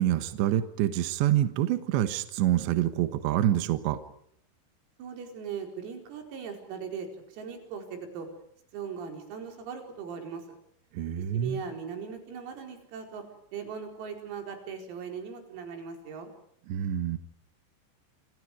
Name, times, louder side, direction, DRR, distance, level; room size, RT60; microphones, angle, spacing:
voice 1, 0.0-4.0 11.0-11.6 16.7-17.2, right 12 dB, 70° right, 10 dB, 3.4 m, -26 dB
voice 2, 5.0-7.1 7.3-8.3 8.7-10.4 11.2-13.2 13.5-16.3, right 6 dB, 90° right, 4 dB, 7.4 m, -39 dB
28.0 x 28.0 x 5.0 m, 0.68 s
omnidirectional pair, 5.9 m